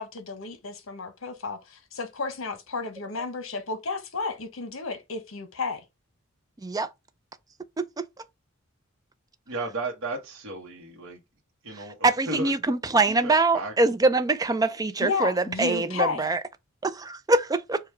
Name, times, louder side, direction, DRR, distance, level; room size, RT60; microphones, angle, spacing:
voice 1, 0.0-5.8 15.0-16.3, left 4 dB, 75° left, 1.0 m, -32 dB
voice 2, 9.5-11.2 11.6-12.0 12.3-12.5 13.1-13.7, right 2 dB, 80° right, 1.0 m, -34 dB
voice 3, 12.0-16.4 16.8-17.8, right 3 dB, 20° right, 0.4 m, -24 dB
4.9 x 2.3 x 4.5 m
head